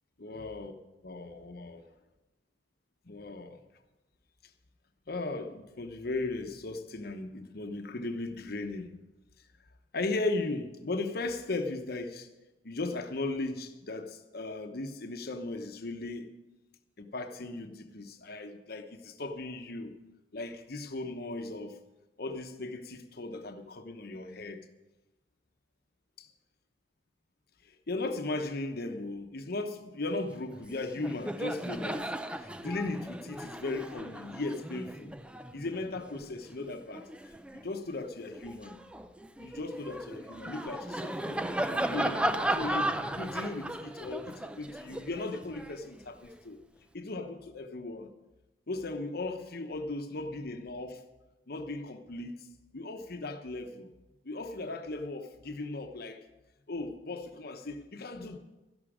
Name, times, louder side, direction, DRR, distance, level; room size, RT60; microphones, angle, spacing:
voice 1, 0.2-0.7 1.0-1.8 3.0-3.6 5.1-8.9 9.9-12.3 12.6-16.3 17.0-19.9 20.3-21.8 22.2-24.7 26.2-26.3 27.6-32.1 32.4-35.2 35.5-38.8 39.4-46.6 46.9-48.1 48.7-51.0 51.5-53.9 54.2-56.3 56.7-58.4, left 2 dB, 60° left, 1.0 m, -37 dB
Laughter, 30.5-30.7 31.0-37.7 38.2-46.4, right 1 dB, 5° right, 0.4 m, -36 dB
13.0 x 11.5 x 5.0 m
head